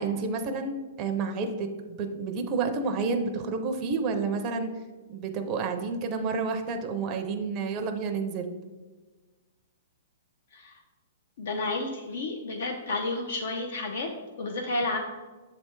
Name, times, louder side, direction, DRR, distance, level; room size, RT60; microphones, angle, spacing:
voice 1, 0.0-4.7 5.1-8.5, right 4 dB, 25° right, 5 dB, 0.5 m, -30 dB
voice 2, 11.4-14.1 14.4-15.0, left 2 dB, 65° left, 3 dB, 0.6 m, -31 dB
7.1 x 3.3 x 4.5 m, 1.3 s
hypercardioid pair, 170°, 0 cm